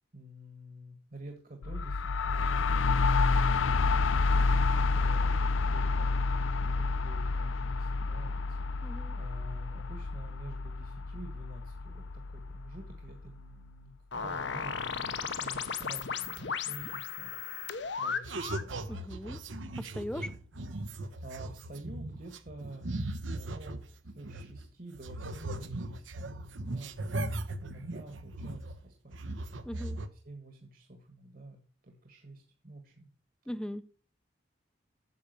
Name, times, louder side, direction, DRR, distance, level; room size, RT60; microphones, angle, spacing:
voice 1, 0.1-2.5 3.3-4.1 4.7-6.1 6.6-13.9 14.2-17.3 17.6-18.7 21.0-22.9 23.3-26.2 26.5-29.4 30.2-33.1 33.4-33.5, right 1 dB, 45° right, 3 dB, 1.5 m, -49 dB
sound 1, 1.6-13.3, left 3 dB, 80° left, 0.5 m, -29 dB
voice 2, 8.8-9.2 18.9-19.4 19.8-20.3 29.7-30.0 33.5-33.8, equal, 5° left, 13 dB, 0.5 m, -39 dB
sound 2, 14.1-18.7, left 6 dB, 65° left, 0.9 m, -35 dB
sound 3, 18.2-24.7 24.9-28.8 29.1-30.1, right 2 dB, 75° right, 1.0 m, -38 dB
9.6 x 7.0 x 6.8 m, 0.42 s
head